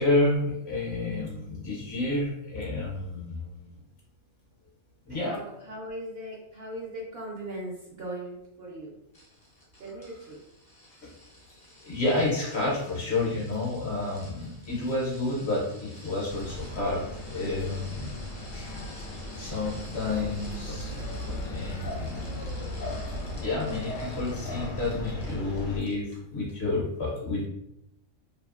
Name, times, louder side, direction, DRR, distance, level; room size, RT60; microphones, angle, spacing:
voice 1, 0.0-3.7 5.1-5.4 11.8-17.0 17.3-18.1 18.5-18.9 19.3-20.9 21.3-22.1 23.3-27.5, left 2 dB, 55° left, -4 dB, 0.9 m, -30 dB
voice 2, 5.1-8.9 9.8-10.4, right 1 dB, 60° right, -3 dB, 0.7 m, -39 dB
sound 1, 9.1-25.6 25.9-26.2 26.5-26.6, left 1 dB, 35° left, 0.3 m, -51 dB
sound 2, 16.3-25.8, left 1 dB, 75° left, 0.9 m, -36 dB
2.6 x 2.3 x 2.4 m, 0.83 s
omnidirectional pair, 1.4 m